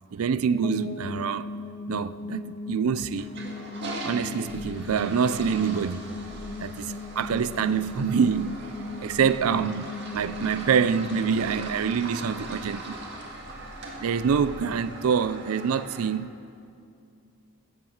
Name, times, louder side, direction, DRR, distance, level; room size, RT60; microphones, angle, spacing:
voice 1, 0.1-1.5 1.9-3.3 4.0-6.0 6.6-8.7 9.0-13.0 14.0-16.3, right 6 dB, 80° right, 0.4 m, -26 dB
sound 1, 0.6-13.5, left 3 dB, 25° left, 0.4 m, -38 dB
Toilet flush, 3.1-16.1, right 2 dB, 50° right, 1.8 m, -41 dB
sound 2, 4.3-14.9 15.3-15.4, equal, 45° left, 1.5 m, -48 dB
15.0 x 7.9 x 7.1 m
head